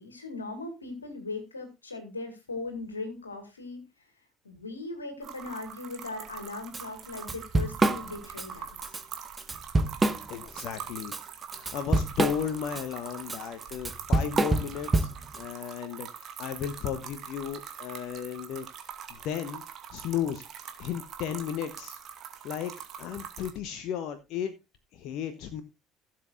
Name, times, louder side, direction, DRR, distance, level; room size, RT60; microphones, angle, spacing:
voice 1, 0.0-3.8 4.4-8.9, left 3 dB, 85° left, 7 dB, 2.2 m, -39 dB
sound 1, 5.2-23.5, right 8 dB, 50° right, 2.2 m, -43 dB
Drum kit / Drum, 6.7-6.8 7.2-8.5 8.8-9.0 9.4-10.6 11.0-15.4, right 2 dB, 20° right, 1.1 m, -26 dB
voice 2, 10.3-11.1 11.5-19.6 19.9-20.4 20.8-22.0 22.4-22.7 23.0-24.5 24.9-25.6, left 9 dB, 55° left, 10 dB, 1.0 m, -34 dB
16.5 x 7.7 x 2.5 m, 0.25 s
figure-of-eight pair, 60°, 0 cm